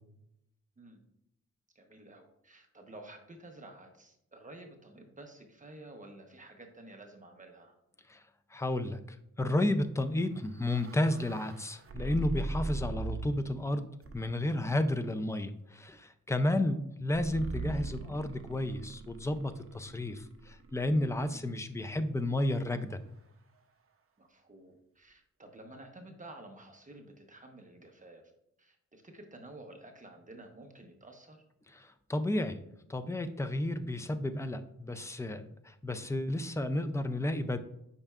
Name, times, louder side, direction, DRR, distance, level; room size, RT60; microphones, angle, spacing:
voice 1, 1.7-7.7 16.4-16.8 21.2-21.5 24.2-28.2 28.6-31.4, right 2 dB, 25° right, 3 dB, 1.0 m, -51 dB
voice 2, 8.5-23.0 31.7-32.6 32.9-37.6, left 1 dB, 10° left, 10 dB, 0.4 m, -32 dB
sound 1, 10.2-13.6 14.0-14.6 17.1-21.2, right 2 dB, 45° right, 0.7 m, -41 dB
8.8 x 5.5 x 2.4 m, 0.81 s
wide cardioid pair, 130°, 30 cm